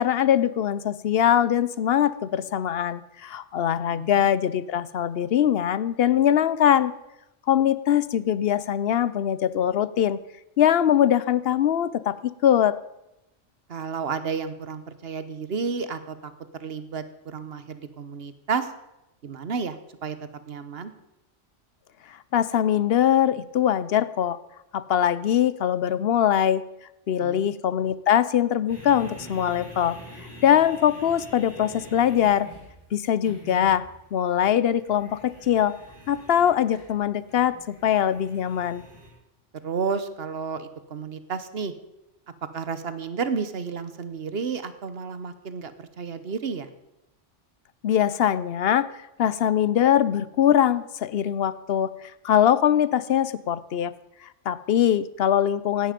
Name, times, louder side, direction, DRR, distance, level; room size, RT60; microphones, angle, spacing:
voice 1, 0.0-6.9 7.5-10.2 10.6-12.8 22.3-24.4 24.7-26.6 27.1-30.0 30.4-32.5 32.9-33.8 34.1-35.7 36.1-38.8 47.8-48.9 49.2-51.9 52.2-53.9 54.5-55.9, left 10 dB, 60° left, 17 dB, 0.8 m, -22 dB
voice 2, 13.7-18.7 19.2-19.8 20.0-20.2 20.5-20.9 27.2-27.5 39.6-41.7 42.5-46.7, right 5 dB, 55° right, 12 dB, 1.2 m, -31 dB
sound 1, 28.7-39.1, right 1 dB, 20° left, 5.0 m, -46 dB
17.0 x 12.0 x 5.1 m, 0.91 s
omnidirectional pair, 1.2 m